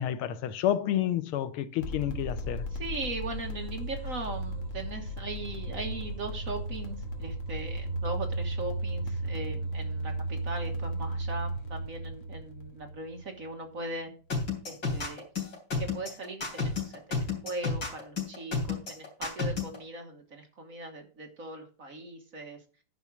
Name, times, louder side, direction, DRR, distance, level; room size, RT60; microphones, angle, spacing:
voice 1, 0.0-2.6, left 11 dB, 85° left, 1.7 m, -29 dB
sound 1, 1.8-13.5, right 1 dB, 65° left, 2.1 m, -35 dB
voice 2, 2.7-14.1 14.7-15.3 15.8-22.6, right 2 dB, 45° right, 1.5 m, -39 dB
sound 2, 14.3-19.8, left 4 dB, 45° left, 3.8 m, -31 dB
10.5 x 5.3 x 6.0 m
omnidirectional pair, 2.4 m